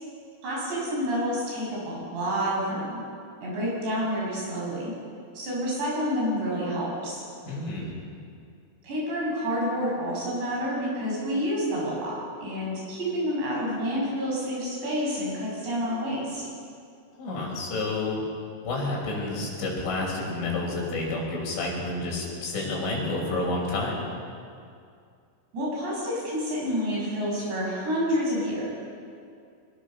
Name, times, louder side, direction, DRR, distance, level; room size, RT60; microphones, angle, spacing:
voice 1, 0.4-3.0 3.4-4.9 5.4-7.2 8.8-16.4 25.5-28.7, equal, 65° right, -4 dB, 9.5 m, -29 dB
voice 2, 7.5-7.9 17.2-18.2 18.6-24.0, left 2 dB, 80° left, -2 dB, 7.8 m, -29 dB
25.0 x 21.5 x 6.7 m, 2.4 s
omnidirectional pair, 5.4 m